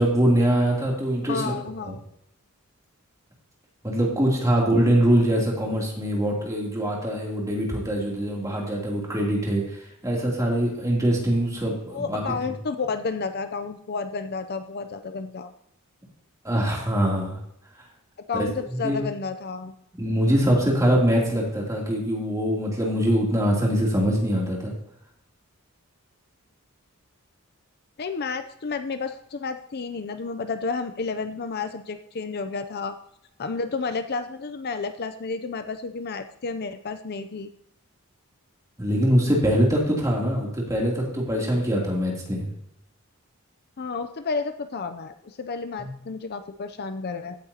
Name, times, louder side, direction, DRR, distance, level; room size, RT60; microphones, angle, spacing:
voice 1, 0.0-1.5 1.8-1.9 3.8-12.2 16.4-17.4 18.4-19.0 20.0-24.7 38.8-42.5 45.8-45.9, equal, 15° right, -3 dB, 3.0 m, -23 dB
voice 2, 1.3-2.0 11.9-15.5 18.3-19.7 28.0-32.9 33.4-37.5 43.8-47.4, left 4 dB, 45° left, 9 dB, 0.5 m, -31 dB
16.0 x 8.7 x 2.9 m, 0.76 s
head